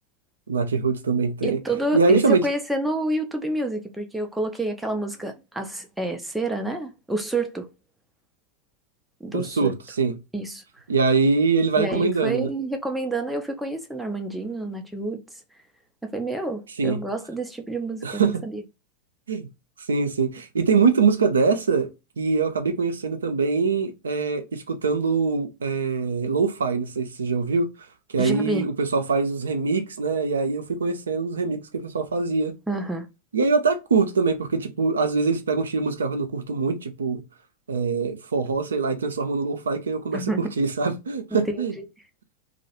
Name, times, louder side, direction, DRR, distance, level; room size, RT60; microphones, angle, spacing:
voice 1, 0.5-1.6 1.9-2.4 9.3-10.2 10.9-12.5 16.8-17.0 18.0-18.4 19.3-19.5 19.9-21.9 22.2-27.7 28.1-32.5 33.3-37.2 37.7-41.7, right 4 dB, 70° right, 0.4 m, -23 dB
voice 2, 1.4-7.7 9.2-9.7 10.3-10.6 11.8-15.2 16.0-18.6 28.2-28.7 32.7-33.1 40.1-40.5 41.5-41.6, right 2 dB, 5° right, 0.4 m, -28 dB
2.2 x 2.0 x 2.8 m
figure-of-eight pair, 90°, 0 cm